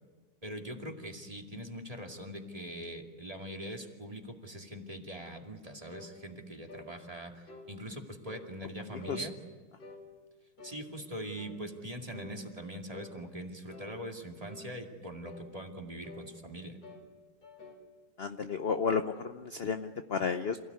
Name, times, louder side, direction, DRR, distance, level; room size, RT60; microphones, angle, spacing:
voice 1, 0.4-9.3 10.6-16.8, equal, 20° right, 2 dB, 2.3 m, -42 dB
sound 1, 5.9-6.2 6.7-6.9 7.5-7.7 8.2-8.5 9.0-9.3 9.8-10.0 10.6-10.8 11.4-11.6 12.1-12.4 12.9-13.2 13.7-13.9 14.5-14.7 15.2-15.5 16.0-16.3 16.8-17.1 17.4-17.8, left 3 dB, 85° left, 3.5 m, -49 dB
voice 2, 8.9-9.3 18.2-20.6, left 5 dB, 50° left, 8 dB, 0.8 m, -32 dB
28.0 x 16.5 x 9.6 m, 1.4 s
omnidirectional pair, 2.0 m